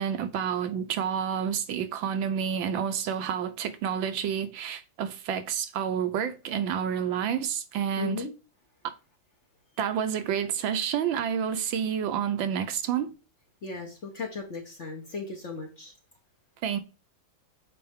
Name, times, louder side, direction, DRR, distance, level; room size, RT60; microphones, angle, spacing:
voice 1, 0.0-8.3 8.8-8.9 9.8-13.1 16.6-16.8, right 8 dB, 75° right, 1.3 m, -29 dB
voice 2, 8.0-8.3 13.6-15.9, left 4 dB, 45° left, 1.0 m, -36 dB
7.6 x 4.4 x 3.5 m
omnidirectional pair, 2.3 m